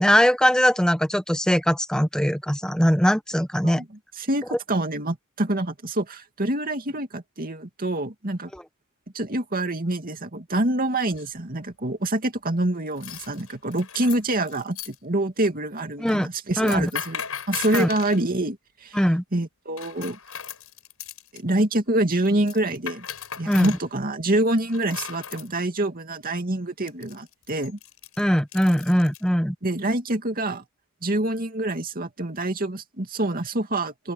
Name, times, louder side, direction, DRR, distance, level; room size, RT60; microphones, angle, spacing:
voice 1, 0.0-3.8 8.5-8.6 16.0-16.3 16.6-16.9 17.7-17.9 18.9-19.2 23.5-23.7 28.2-29.5, equal, 5° left, 1.1 m, -21 dB
voice 2, 4.2-8.5 9.1-17.2 17.5-19.0 19.3-20.2 21.3-23.1 23.4-27.8 29.6-30.6 31.0-34.1, right 1 dB, 40° right, 2.6 m, -26 dB
sound 1, 11.1-11.5 12.9-14.9 16.5-18.2 19.8-21.4 22.2-23.8 24.7-25.5 26.9-29.2, left 9 dB, 90° left, 6.4 m, -37 dB
open air
head